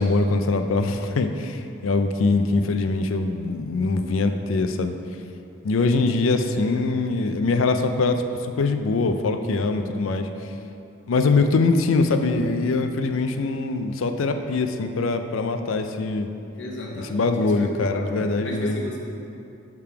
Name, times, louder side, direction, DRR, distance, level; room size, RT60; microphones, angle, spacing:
voice 1, 0.0-4.9 5.6-10.3 11.1-16.3 17.1-18.8, left 3 dB, 85° left, 7 dB, 0.4 m, -23 dB
voice 2, 6.5-7.1 16.5-19.0, left 1 dB, 65° left, -1 dB, 0.9 m, -35 dB
6.6 x 3.6 x 5.7 m, 2.7 s
head